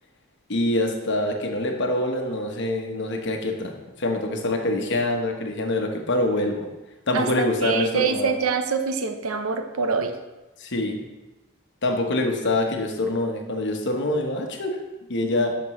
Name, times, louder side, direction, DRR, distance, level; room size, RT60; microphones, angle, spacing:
voice 1, 0.5-6.7 7.1-8.3 10.6-11.0 11.8-14.8 15.1-15.5, left 1 dB, 55° left, 3 dB, 1.0 m, -25 dB
voice 2, 7.1-10.1, right 5 dB, 85° right, 7 dB, 0.7 m, -25 dB
12.0 x 5.1 x 3.1 m, 1.1 s
head